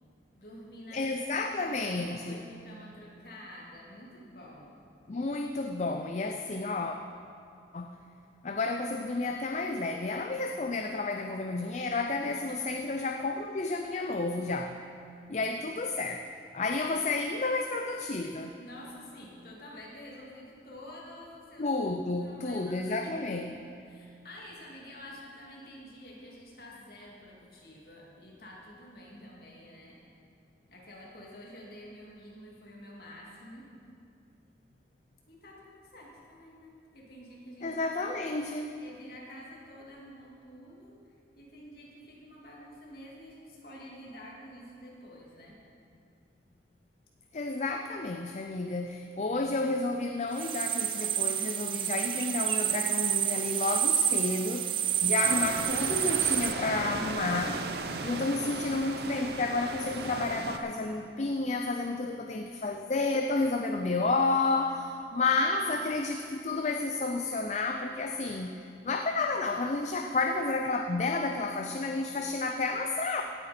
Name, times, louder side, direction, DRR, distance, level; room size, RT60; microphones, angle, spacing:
voice 1, 0.3-4.9 12.3-12.8 18.6-21.7 22.2-30.0 30.7-33.7 35.3-37.8 38.8-40.9 41.4-45.6 54.9-55.2 62.2-62.9, equal, 55° left, -4 dB, 2.5 m, -49 dB
voice 2, 0.9-2.4 5.1-7.0 7.7-8.0 8.4-14.8 15.3-16.2 16.5-18.6 21.6-23.6 37.6-38.7 47.3-73.2, left 3 dB, 40° left, 5 dB, 0.5 m, -31 dB
sound 1, 50.3-56.5, right 10 dB, 30° right, 0.3 m, -29 dB
sound 2, 55.2-60.6, right 3 dB, 60° right, 0.7 m, -36 dB
17.0 x 8.9 x 4.3 m, 2.5 s
head